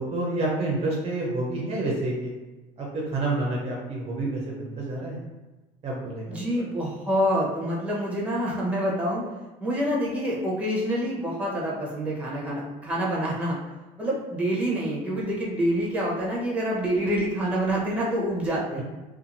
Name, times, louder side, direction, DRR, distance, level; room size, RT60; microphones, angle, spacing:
voice 1, 0.0-2.3 2.8-5.2 5.8-6.4, right 2 dB, 40° right, -3 dB, 0.7 m, -28 dB
voice 2, 6.3-9.2 9.6-13.6 14.0-18.8, equal, 10° right, -5 dB, 0.9 m, -27 dB
2.7 x 2.5 x 2.6 m, 1.2 s
supercardioid pair, 95°, 16 cm